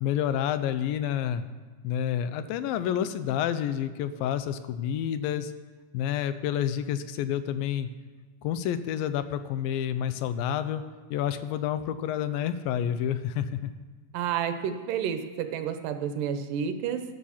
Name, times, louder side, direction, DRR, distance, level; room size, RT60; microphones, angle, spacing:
voice 1, 0.0-1.5 1.8-5.5 5.9-7.9 8.4-10.8 11.1-13.7, left 10 dB, 80° left, 12 dB, 2.3 m, -29 dB
voice 2, 14.1-17.0, right 8 dB, 75° right, 8 dB, 2.2 m, -30 dB
11.5 x 11.5 x 7.2 m, 1.4 s
omnidirectional pair, 4.2 m